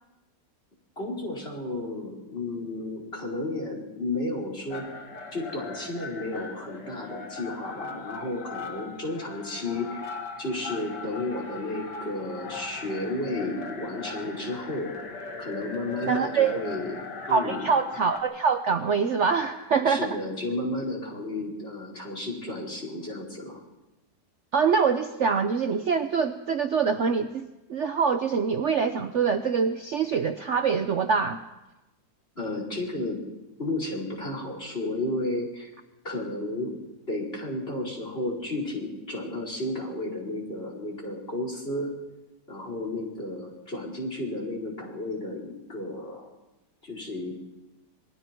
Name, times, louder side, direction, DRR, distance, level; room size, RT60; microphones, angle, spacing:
voice 1, 1.0-4.9 5.3-14.9 15.4-17.7 19.9-23.6 32.4-33.2 33.6-35.7 36.0-36.8 37.1-41.9 42.5-46.3 46.8-47.3, left 2 dB, 35° left, 0 dB, 5.2 m, -32 dB
sound 1, 4.7-18.2, left 4 dB, 75° left, 2.5 m, -39 dB
voice 2, 16.1-16.6 17.3-20.2 24.5-31.4, right 5 dB, 55° right, 8 dB, 1.0 m, -25 dB
27.0 x 21.5 x 4.6 m, 1.0 s
omnidirectional pair, 1.8 m